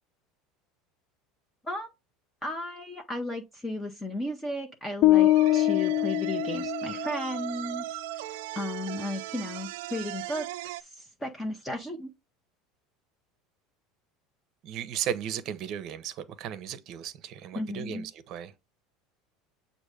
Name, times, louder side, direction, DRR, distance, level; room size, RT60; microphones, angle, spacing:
voice 1, 2.4-12.1 17.5-18.1, left 1 dB, 10° left, 0.8 m, -35 dB
sound 1, 5.0-7.2, left 16 dB, 40° left, 0.3 m, -23 dB
sound 2, 5.1-10.8, right 16 dB, 80° right, 0.3 m, -37 dB
voice 2, 14.6-18.5, right 9 dB, 40° right, 0.8 m, -35 dB
7.8 x 2.6 x 4.9 m
cardioid pair, 165°, 0 cm